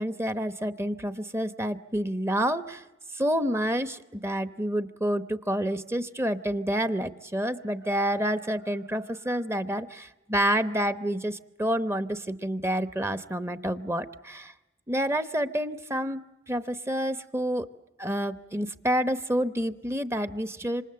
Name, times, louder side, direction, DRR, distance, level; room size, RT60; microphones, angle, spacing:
voice 1, 0.0-2.8 3.1-14.5 14.9-17.7 18.0-20.8, equal, 15° right, 11 dB, 0.9 m, -28 dB
27.0 x 26.5 x 7.7 m, 1.0 s
head